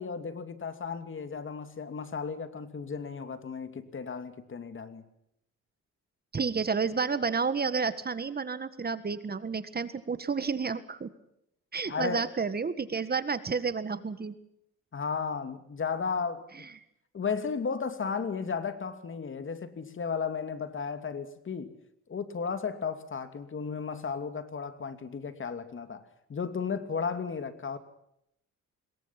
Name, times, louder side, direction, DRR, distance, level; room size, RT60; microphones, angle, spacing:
voice 1, 0.0-5.0 11.9-12.3 14.9-16.5 17.1-21.7 22.1-27.8, left 5 dB, 40° left, 2.7 m, -34 dB
voice 2, 6.3-11.1 11.7-14.3 16.5-16.7, right 5 dB, 30° right, 1.7 m, -30 dB
26.0 x 22.0 x 5.9 m
cardioid pair, 90°, 30 cm